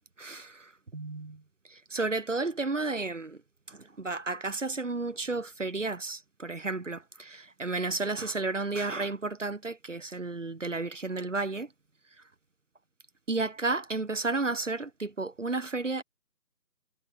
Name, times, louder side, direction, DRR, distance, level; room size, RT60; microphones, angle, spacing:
voice 1, 0.2-0.6 0.9-1.4 1.7-3.4 3.7-11.7 13.3-16.0, right 3 dB, 50° right, 0.7 m, -32 dB
figure-of-eight pair, 175°, 48 cm